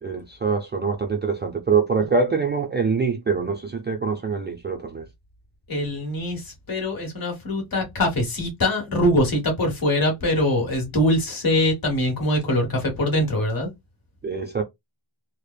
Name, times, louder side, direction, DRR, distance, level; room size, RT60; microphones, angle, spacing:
voice 1, 0.0-5.1 14.2-14.6, right 5 dB, 25° right, 0.3 m, -24 dB
voice 2, 5.7-13.7, left 1 dB, 50° left, 1.3 m, -23 dB
3.1 x 2.0 x 2.2 m
wide cardioid pair, 145°, 46 cm